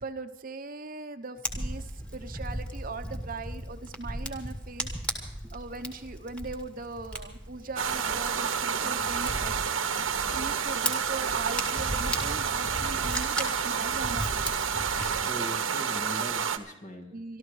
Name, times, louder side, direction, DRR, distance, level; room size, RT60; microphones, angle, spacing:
voice 1, 0.0-9.5 10.3-14.6 17.1-17.4, right 3 dB, 45° right, 8 dB, 0.9 m, -39 dB
Fire, 1.4-15.2, right 1 dB, 5° left, 2.2 m, -37 dB
sound 1, 7.8-16.6, right 6 dB, 85° right, 1.1 m, -29 dB
voice 2, 15.0-17.2, equal, 40° left, 4 dB, 2.0 m, -41 dB
25.5 x 13.5 x 3.2 m, 0.92 s
head